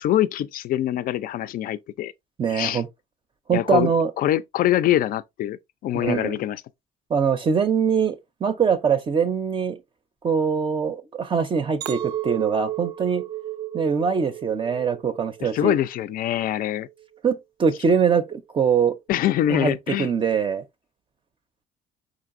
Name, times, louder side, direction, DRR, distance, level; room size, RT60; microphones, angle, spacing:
voice 1, 0.0-2.1 2.5-2.8 3.5-3.9 4.2-6.6 15.4-16.9 19.1-20.1, left 12 dB, 55° left, 0.4 m, -24 dB
voice 2, 2.4-2.9 3.5-4.1 5.9-6.4 7.1-9.8 10.2-13.2 13.7-15.8 17.2-18.9 19.5-19.7 20.0-20.6, right 6 dB, 30° right, 0.5 m, -23 dB
Chink clink, 11.8-16.2 16.6-17.0, right 13 dB, 85° right, 0.5 m, -33 dB
5.0 x 3.9 x 2.5 m
cardioid pair, 110°, 17 cm